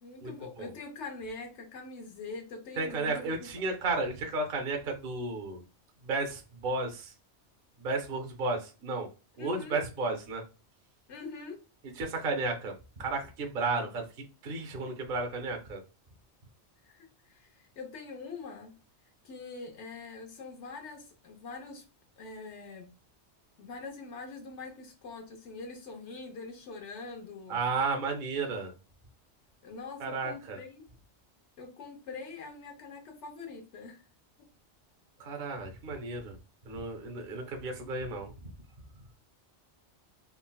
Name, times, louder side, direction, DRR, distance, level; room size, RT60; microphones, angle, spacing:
voice 1, 0.0-3.5 9.4-9.8 11.1-11.6 16.8-18.8 19.2-21.8 22.2-22.9 23.6-27.6 29.6-30.9 31.6-34.0, left 4 dB, 75° left, 3 dB, 1.1 m, -43 dB
voice 2, 2.8-5.6 6.0-7.1 7.8-9.1 9.4-10.4 12.0-14.1 14.4-15.8 27.5-28.7 30.0-30.6 35.2-36.4 36.7-38.3, right 3 dB, 55° right, 3 dB, 0.8 m, -33 dB
3.7 x 2.1 x 2.2 m, 0.32 s
omnidirectional pair, 1.2 m